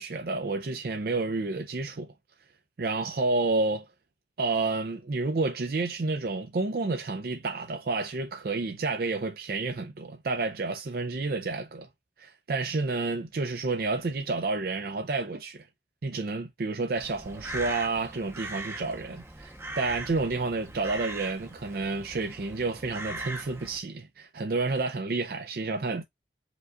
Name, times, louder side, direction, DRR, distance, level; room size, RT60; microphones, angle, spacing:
voice 1, 0.0-2.1 2.8-3.8 4.4-11.9 12.2-15.7 16.0-26.0, right 3 dB, 55° right, 0.5 m, -30 dB
Crow, 16.9-23.8, right 2 dB, 15° right, 0.7 m, -40 dB
5.1 x 2.3 x 3.7 m
head